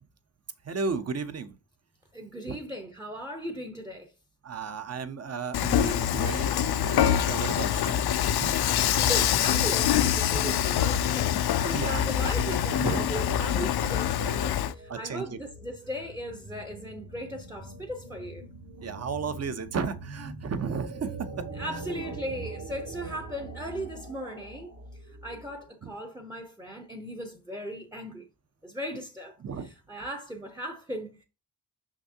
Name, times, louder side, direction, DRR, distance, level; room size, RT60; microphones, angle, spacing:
voice 1, 0.6-1.5 2.5-2.6 4.4-8.0 8.3-8.6 10.3-10.5 11.6-12.0 12.8-13.1 14.9-15.4 18.8-21.5 25.8-25.9 29.4-29.7, right 5 dB, 40° right, 0.7 m, -34 dB
voice 2, 2.1-4.1 8.9-18.4 21.5-24.7 25.1-28.3 28.6-31.2, equal, 5° right, 0.6 m, -38 dB
Dishes pots and pans / Frying (food), 5.5-14.7, left 10 dB, 70° left, 0.5 m, -25 dB
sound 1, 12.0-25.7, right 3 dB, 60° right, 2.2 m, -43 dB
6.3 x 6.1 x 2.7 m
wide cardioid pair, 175°, 39 cm